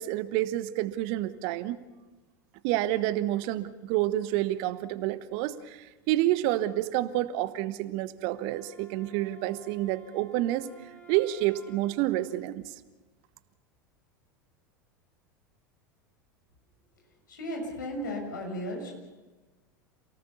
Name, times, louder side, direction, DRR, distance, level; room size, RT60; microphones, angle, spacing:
voice 1, 0.0-1.8 2.6-10.7 11.1-12.7, right 14 dB, 50° right, 15 dB, 1.1 m, -29 dB
Wind instrument woodwind instrument, 8.2-12.4, right 1 dB, 15° left, 4.6 m, -54 dB
voice 2, 17.3-18.9, equal, 70° left, 1 dB, 6.8 m, -35 dB
28.5 x 18.0 x 7.1 m, 1.2 s
figure-of-eight pair, 80°, 11 cm